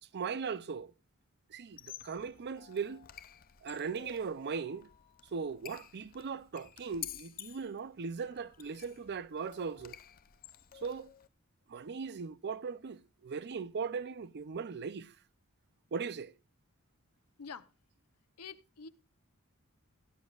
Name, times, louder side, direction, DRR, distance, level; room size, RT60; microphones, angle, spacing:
voice 1, 0.1-0.9 1.5-3.0 3.6-4.9 5.3-10.0 10.7-11.1 11.7-15.1 15.9-16.3, right 5 dB, 50° right, 0.5 m, -38 dB
Squeak, 1.7-11.3, left 11 dB, 40° left, 0.6 m, -51 dB
voice 2, 18.4-18.9, left 6 dB, 80° left, 0.8 m, -46 dB
16.5 x 11.5 x 2.4 m
head